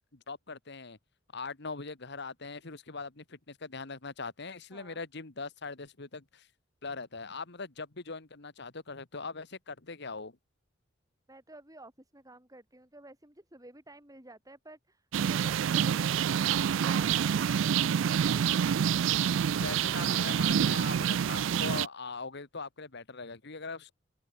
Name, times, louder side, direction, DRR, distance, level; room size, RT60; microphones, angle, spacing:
voice 1, 0.1-1.0 1.3-6.5 6.8-10.4 19.6-23.9, left 4 dB, 60° left, 1.7 m, -41 dB
voice 2, 4.7-5.0 11.3-18.7, right 2 dB, 20° right, 6.2 m, -53 dB
sound 1, 15.1-21.9, right 8 dB, 70° right, 0.4 m, -27 dB
head